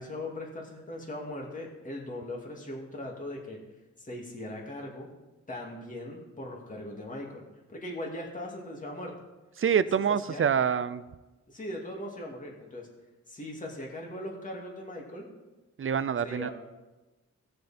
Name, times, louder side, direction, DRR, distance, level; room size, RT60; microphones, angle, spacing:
voice 1, 0.0-3.6 4.0-5.1 5.5-7.4 7.7-9.1 10.1-10.5 11.5-12.9 13.3-15.4 16.2-16.5, left 1 dB, 25° left, -2 dB, 2.4 m, -39 dB
voice 2, 9.6-11.0 15.8-16.5, right 7 dB, 45° right, 15 dB, 0.6 m, -26 dB
17.5 x 6.5 x 4.3 m, 1.1 s
wide cardioid pair, 100°, 30 cm